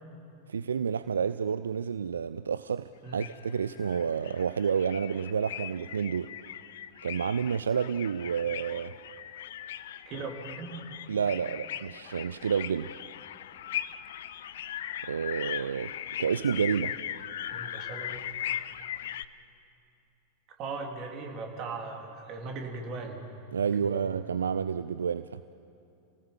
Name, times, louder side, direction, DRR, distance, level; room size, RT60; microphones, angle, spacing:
voice 1, 0.5-6.3 7.0-8.9 11.1-12.9 15.1-15.9 16.2-16.9 23.5-25.4, right 7 dB, 70° right, 14 dB, 0.4 m, -29 dB
sound 1, 3.1-19.3, left 11 dB, 60° left, 0.6 m, -39 dB
voice 2, 10.0-10.9 17.5-18.2 20.6-23.2 23.8-24.0, right 4 dB, 35° right, 2 dB, 3.4 m, -38 dB
28.5 x 18.5 x 7.2 m, 2.8 s
figure-of-eight pair, 90°, 0 cm